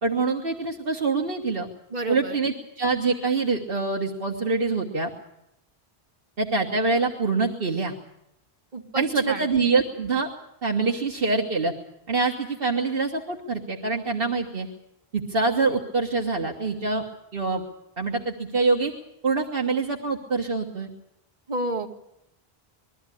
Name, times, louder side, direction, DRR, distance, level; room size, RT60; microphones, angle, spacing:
voice 1, 0.0-1.7 2.1-5.1 6.4-7.9 9.0-10.3 10.6-11.7 12.1-14.7 15.1-17.0 17.3-17.6 18.0-18.9 19.2-20.9, right 3 dB, 60° right, 1 dB, 1.7 m, -25 dB
voice 2, 1.9-2.4 8.7-9.5 21.5-21.9, right 2 dB, 45° right, 2 dB, 2.1 m, -30 dB
22.0 x 14.0 x 9.9 m, 0.85 s
omnidirectional pair, 1.1 m